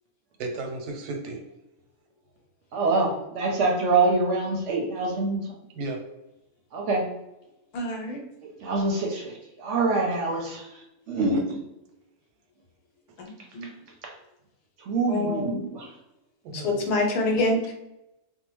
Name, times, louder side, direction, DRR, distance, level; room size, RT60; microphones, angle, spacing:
voice 1, 0.4-1.4 5.7-6.0 11.2-11.4 16.4-16.9, right 2 dB, 90° right, 2 dB, 1.1 m, -34 dB
voice 2, 2.7-5.4 6.7-7.0 8.6-9.3 9.6-10.7 11.1-11.4 14.9-15.9, right 3 dB, 65° right, 0 dB, 0.8 m, -25 dB
voice 3, 7.7-8.2 13.2-13.7 15.1-15.6 16.5-17.7, left 2 dB, 85° left, 1 dB, 1.2 m, -26 dB
2.7 x 2.1 x 3.0 m, 0.91 s
omnidirectional pair, 1.6 m